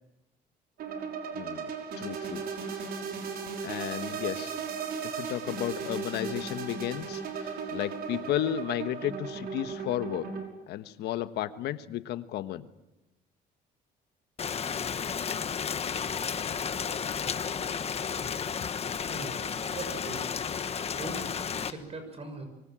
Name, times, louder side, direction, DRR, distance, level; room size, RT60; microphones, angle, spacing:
sound 1, 0.8-10.5, right 6 dB, 65° right, 5.8 m, -36 dB
voice 1, 1.3-2.4 3.6-4.5 5.0-10.3 10.7-12.7, left 12 dB, 80° left, 11 dB, 1.4 m, -33 dB
Rain, 14.4-21.7, left 7 dB, 35° left, 1.4 m, -32 dB
voice 2, 19.7-20.5 20.9-22.4, right 3 dB, 35° right, 8 dB, 6.4 m, -41 dB
25.0 x 24.0 x 7.6 m, 0.99 s
cardioid pair, 110°, 17 cm